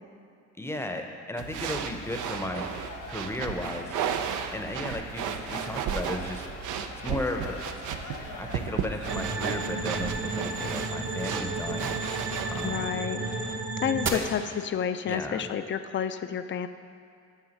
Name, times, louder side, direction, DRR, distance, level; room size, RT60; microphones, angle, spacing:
voice 1, 0.6-2.7 3.1-4.0 4.5-6.5 7.0-7.6 8.1-12.9 14.1-14.2 15.1-15.5, left 1 dB, 10° left, 4 dB, 0.7 m, -35 dB
sound 1, 1.4-12.8, right 8 dB, 80° right, 0.5 m, -34 dB
sound 2, 2.0-13.6, left 3 dB, 70° left, 1.1 m, -44 dB
sound 3, 9.1-14.1, right 3 dB, 40° right, 0.8 m, -32 dB
voice 2, 12.6-13.2 13.5-16.7, left 8 dB, 40° left, 10 dB, 0.4 m, -30 dB
8.9 x 3.6 x 6.5 m, 2.4 s
cardioid pair, 90°, 30 cm